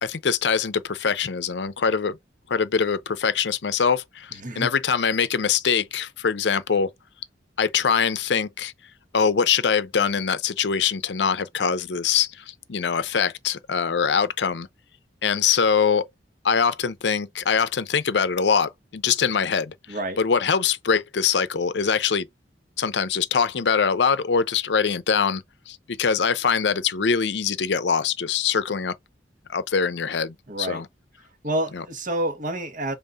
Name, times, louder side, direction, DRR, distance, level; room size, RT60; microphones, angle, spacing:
voice 1, 0.0-2.2 2.5-6.9 7.6-8.7 9.1-14.7 15.2-16.1 16.4-19.7 20.2-22.3 22.8-28.9 29.5-30.9 31.7-31.8, left 6 dB, 75° left, 0.6 m, -23 dB
voice 2, 4.3-4.7 19.9-20.2 30.5-30.8 31.4-33.0, right 1 dB, 50° right, 1.2 m, -28 dB
5.5 x 3.7 x 2.5 m
head